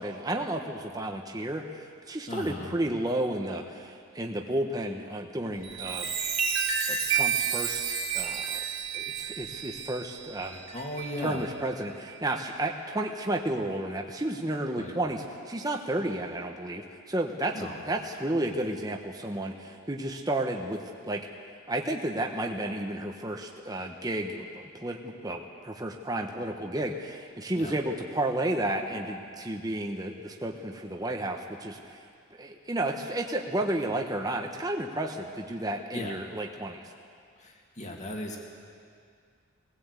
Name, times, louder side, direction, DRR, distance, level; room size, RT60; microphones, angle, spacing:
voice 1, 0.0-6.1 6.9-7.8 8.1-8.6 8.9-10.6 11.2-21.3 21.7-32.0 32.3-36.8, right 1 dB, 15° right, 2 dB, 1.0 m, -32 dB
voice 2, 2.3-2.7 10.7-11.5 14.7-15.0 17.5-17.8 27.5-27.8 35.9-36.2 37.4-38.4, left 1 dB, 30° left, 0 dB, 2.4 m, -37 dB
Chime, 5.5-11.5 12.1-12.4, right 7 dB, 65° right, 3.0 m, -31 dB
20.0 x 16.5 x 8.2 m, 2.2 s
head